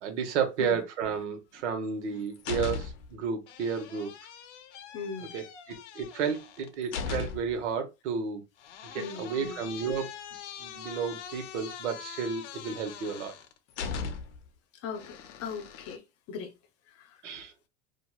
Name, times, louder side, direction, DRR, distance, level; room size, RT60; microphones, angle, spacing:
voice 1, 0.0-4.1 5.3-8.4 8.9-10.1 10.6-13.3 17.2-17.5, right 6 dB, 80° right, 1.0 m, -32 dB
sound 1, 1.8-3.2 3.5-7.6 8.6-14.5 14.9-16.0, left 6 dB, 85° left, 0.6 m, -40 dB
voice 2, 4.9-5.3 9.0-9.6 14.8-16.0 16.3-16.5 17.0-17.1, left 5 dB, 45° left, 0.7 m, -38 dB
3.0 x 2.4 x 2.3 m
hypercardioid pair, 110°, 35 cm